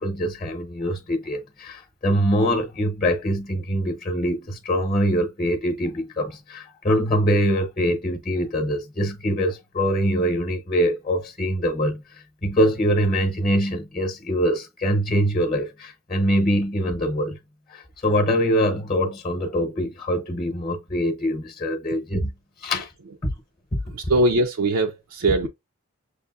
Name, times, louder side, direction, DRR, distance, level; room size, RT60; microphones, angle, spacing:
voice 1, 0.0-17.4 17.7-22.3 22.6-22.9, equal, 30° left, 0.9 m, -23 dB
voice 2, 23.9-25.5, right 2 dB, 80° right, 0.5 m, -21 dB
6.6 x 2.6 x 2.4 m
head